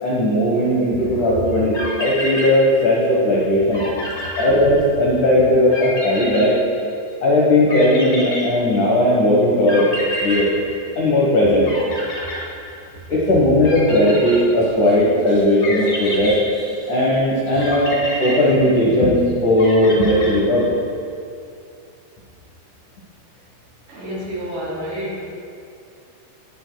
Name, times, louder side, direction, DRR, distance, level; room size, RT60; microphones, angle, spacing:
voice 1, 0.0-1.7 2.0-3.8 4.4-6.6 7.2-9.9 10.2-10.5 10.9-11.7 13.1-16.4 16.9-20.7, left 1 dB, 90° left, -5 dB, 1.7 m, -17 dB
sound 1, 1.5-1.6 1.7-3.1 3.4-3.5 3.7-5.1 5.7-7.1 7.7-9.0 9.7-11.3 11.6-13.1 13.6-14.9 15.6-17.0 17.6-19.1 19.6-20.8, left 1 dB, 30° left, 2.6 m, -30 dB
voice 2, 15.8-17.0 17.5-17.7 18.1-18.2 23.9-25.2, equal, 55° right, -4 dB, 3.3 m, -32 dB
18.5 x 9.1 x 2.3 m, 2.4 s
omnidirectional pair, 5.8 m